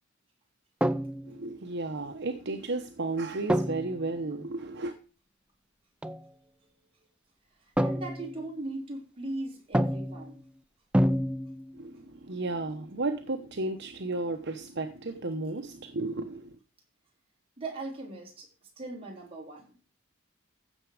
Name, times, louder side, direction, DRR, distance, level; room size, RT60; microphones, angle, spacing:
sound 1, 0.8-1.5 3.5-4.1 6.0-6.2 7.8-8.5 9.7-10.4 10.9-11.9, equal, 5° right, 0.5 m, -28 dB
voice 1, 1.2-4.9 11.7-16.6, right 2 dB, 55° right, 1.0 m, -33 dB
voice 2, 7.6-10.4 17.6-18.5 18.8-19.7, right 2 dB, 30° right, 4.0 m, -39 dB
15.5 x 7.1 x 5.0 m
head